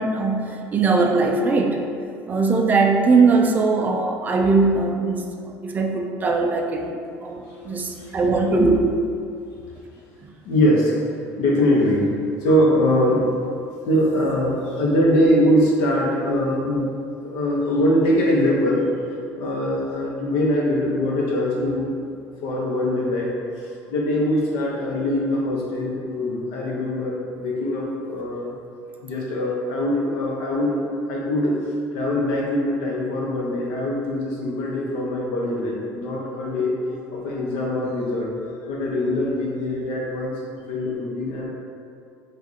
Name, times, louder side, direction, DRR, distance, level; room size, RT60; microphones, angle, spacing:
voice 1, 0.0-1.8 2.3-8.8, right 3 dB, 25° right, 2 dB, 0.3 m, -20 dB
voice 2, 7.9-8.2 10.4-11.0 11.4-12.1 12.4-13.3 13.8-16.9 17.2-18.9 19.4-22.1 22.4-23.3 23.6-28.5 29.0-38.3 38.6-40.4 40.7-41.5, left 1 dB, 85° left, -3 dB, 0.9 m, -22 dB
4.9 x 2.5 x 2.7 m, 2.3 s
cardioid pair, 140°, 6 cm